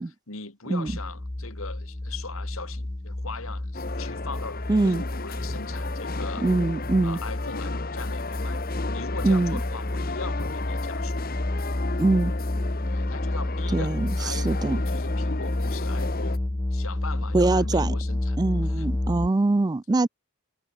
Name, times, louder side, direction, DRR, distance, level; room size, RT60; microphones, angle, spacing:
voice 1, 0.3-6.4 7.0-8.6 8.9-11.2 12.9-16.4 16.7-18.4 18.6-18.9, left 4 dB, 70° left, 3.1 m, -40 dB
sound 1, 0.9-19.3, left 1 dB, 20° left, 0.7 m, -30 dB
sound 2, 3.7-16.4, left 3 dB, 45° left, 1.6 m, -35 dB
voice 2, 4.7-5.0 6.4-7.2 9.2-9.6 12.0-12.3 13.7-14.8 17.3-18.0 18.4-20.1, right 2 dB, 20° right, 0.3 m, -23 dB
head